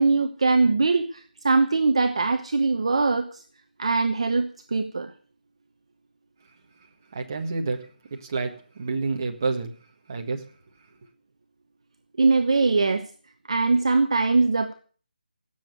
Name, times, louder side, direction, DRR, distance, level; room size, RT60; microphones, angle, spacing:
voice 1, 0.0-3.4 3.8-5.1 12.2-13.1 13.5-14.7, right 3 dB, 35° right, 1.0 m, -22 dB
voice 2, 7.1-9.7 10.1-10.4, right 3 dB, 20° right, 1.5 m, -29 dB
16.5 x 7.3 x 9.3 m
figure-of-eight pair, 180°, 5 cm